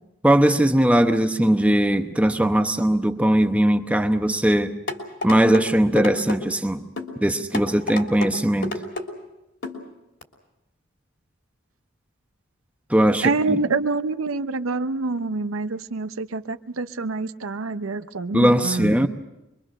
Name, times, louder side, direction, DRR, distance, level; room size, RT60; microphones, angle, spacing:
voice 1, 0.2-4.7 5.2-6.8 7.2-8.7 12.9-13.6 18.3-19.1, right 1 dB, 5° right, 0.9 m, -19 dB
sound 1, 4.9-5.6 6.0-6.4 7.0-7.1 7.5-8.3 8.6-9.1 9.6-9.8 10.2-10.3, left 2 dB, 60° left, 3.1 m, -29 dB
voice 2, 13.2-19.1, right 3 dB, 90° right, 0.7 m, -26 dB
25.0 x 23.0 x 6.5 m
head